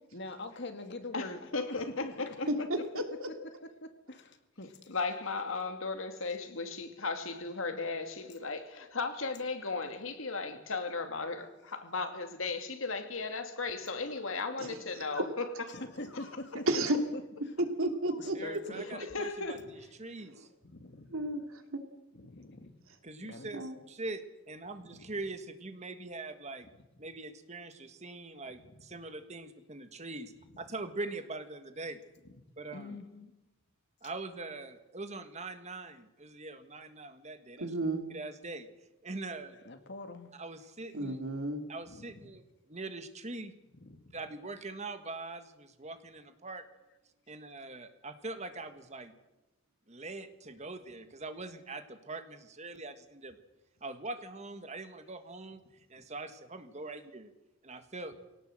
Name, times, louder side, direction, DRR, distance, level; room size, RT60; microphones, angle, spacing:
voice 1, 0.1-2.8 3.2-3.3 3.8-5.0 7.3-7.4 7.9-8.0 8.7-8.9 9.2-9.3 13.9-14.8 15.7-16.7 17.1-17.2 18.2-19.0 19.5-19.6 20.6-21.2 22.1-22.7 23.2-23.5 24.9-25.1 28.7-28.8 32.2-32.4 32.7-33.3 39.5-40.3 41.9-42.3 43.8-44.2, left 2 dB, 55° left, 2.2 m, -45 dB
voice 2, 1.1-2.5 4.9-15.5 19.1-19.6, left 3 dB, 75° left, 2.4 m, -36 dB
voice 3, 2.5-3.3 14.6-14.8 15.1-15.3 16.7-17.0 17.6-18.6 20.3-20.5 21.1-21.8 23.5-23.7 37.6-38.1 40.9-41.6, right 1 dB, 85° right, 2.7 m, -32 dB
voice 4, 18.3-20.5 23.0-26.7 27.0-32.0 32.6-33.0 34.0-37.7 38.1-38.7 39.0-39.6 40.4-41.2 41.7-42.4 42.7-43.5 44.1-46.6 47.3-49.1 49.9-53.4 53.8-55.6 55.9-57.3 57.6-58.2, right 2 dB, 35° right, 1.7 m, -42 dB
22.5 x 17.5 x 7.8 m
head